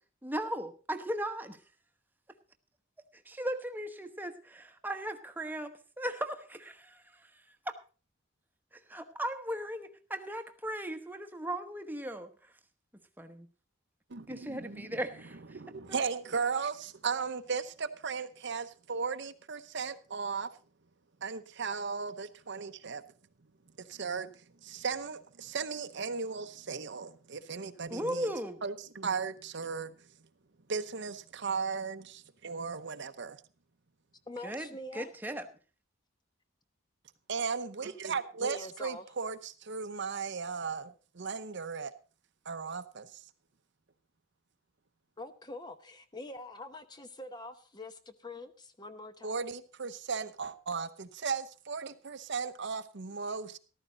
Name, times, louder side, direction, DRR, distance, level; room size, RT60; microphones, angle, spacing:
voice 1, 0.2-1.6 3.1-7.3 7.7-7.8 8.7-12.3 13.2-13.5 14.3-15.6 27.9-28.6 34.4-35.5, right 1 dB, 10° right, 1.0 m, -37 dB
voice 2, 14.1-15.0 15.5-20.5 21.2-23.0 23.8-24.3 24.6-28.3 28.6-30.0 30.7-33.4 37.3-41.9 42.4-43.2 49.2-53.6, right 5 dB, 60° right, 0.8 m, -36 dB
voice 3, 34.3-35.1 38.4-39.0 45.2-49.4, left 2 dB, 20° left, 0.8 m, -44 dB
14.0 x 13.0 x 3.9 m
head